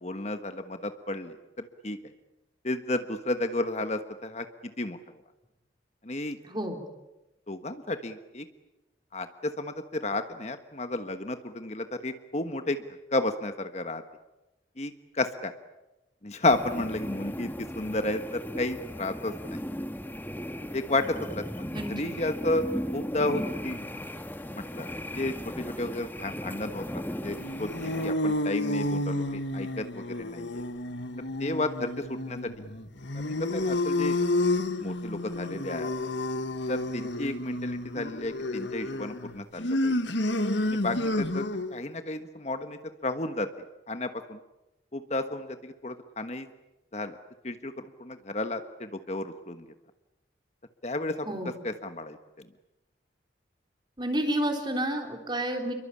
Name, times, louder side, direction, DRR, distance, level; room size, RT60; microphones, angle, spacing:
voice 1, 0.0-2.0 2.6-4.5 4.8-5.0 6.0-6.4 7.5-8.5 9.1-12.8 13.1-14.0 14.8-15.5 16.2-19.3 20.7-21.7 22.0-22.6 22.9-23.9 24.5-24.9 25.1-26.8 27.2-27.7 28.0-30.6 31.4-32.5 33.1-34.2 34.8-35.9 36.7-39.9 40.7-41.4 41.7-43.5 43.9-44.4 44.9-46.5 46.9-47.2 47.4-49.6 50.8-51.3 51.6-52.2, left 2 dB, 35° left, 8 dB, 1.3 m, -32 dB
voice 2, 6.4-6.8 21.7-22.1 51.3-51.6 54.0-55.7, right 1 dB, 25° right, 4 dB, 3.8 m, -30 dB
sound 1, 16.5-28.1, equal, 10° left, 1.8 m, -37 dB
sound 2, 27.3-41.8, left 1 dB, 75° left, 1.8 m, -30 dB
29.0 x 23.0 x 8.6 m, 0.98 s
head